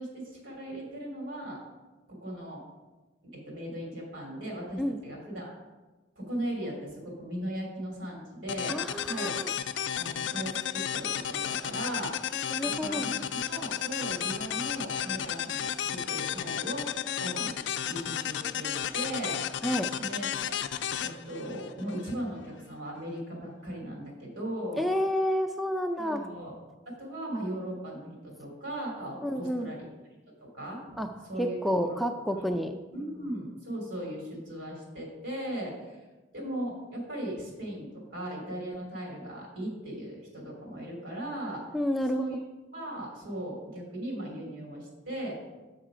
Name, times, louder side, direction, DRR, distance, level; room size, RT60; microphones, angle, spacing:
voice 1, 0.0-1.6 2.1-2.6 3.2-5.5 6.2-9.3 9.9-12.1 12.6-17.6 17.9-19.4 20.0-20.6 21.0-24.8 26.0-26.5 26.9-29.9 30.4-30.9 31.3-32.0 32.5-32.6 32.9-36.0 36.3-41.6 42.1-42.4 42.7-45.3, right 1 dB, 85° right, -1 dB, 2.9 m, -38 dB
sound 1, 8.5-22.1, left 9 dB, 70° left, 0.4 m, -33 dB
voice 2, 8.7-9.5 12.5-13.1 19.6-19.9 24.8-26.2 29.2-29.7 31.0-31.1 31.4-32.7 41.7-42.3, equal, ahead, 6 dB, 0.3 m, -29 dB
6.7 x 6.4 x 5.0 m, 1.2 s
head